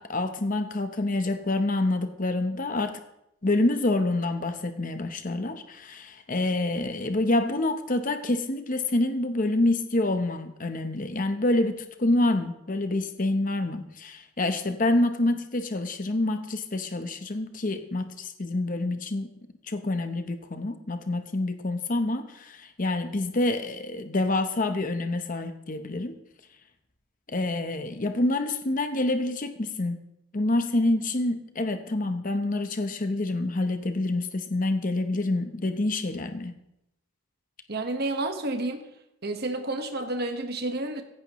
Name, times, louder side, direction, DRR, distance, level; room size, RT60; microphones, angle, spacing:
voice 1, 0.0-3.0 3.4-19.3 19.6-26.2 27.3-30.0 30.3-36.5, left 2 dB, 40° left, 8 dB, 0.8 m, -27 dB
voice 2, 37.7-38.8 39.2-41.0, right 2 dB, 45° right, 5 dB, 1.4 m, -30 dB
16.0 x 15.5 x 3.1 m, 0.82 s
head